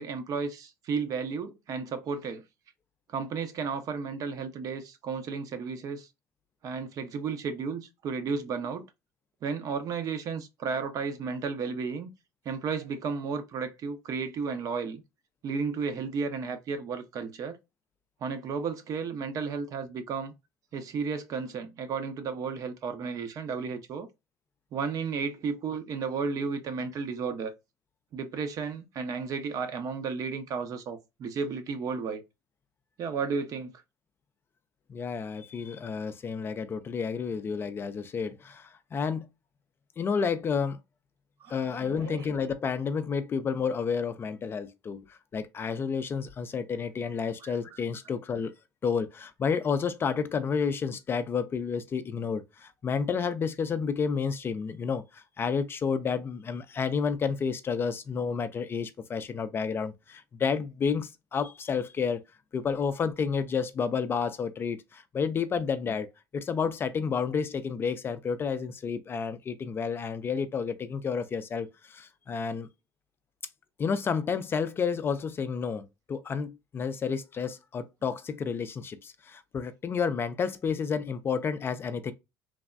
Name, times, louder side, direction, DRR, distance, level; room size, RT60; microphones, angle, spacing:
voice 1, 0.0-2.4 3.1-6.1 6.6-8.8 9.4-12.1 12.4-15.0 15.4-17.6 18.2-20.3 20.7-24.1 24.7-27.5 28.1-32.2 33.0-33.7 41.4-42.4 47.4-47.6, right 5 dB, 50° right, 0.7 m, -33 dB
voice 2, 34.9-39.3 40.0-40.8 41.5-48.6 48.8-62.2 62.5-72.7 73.8-82.1, left 6 dB, 30° left, 0.3 m, -30 dB
3.3 x 2.1 x 2.4 m
cardioid pair, 115°, 8 cm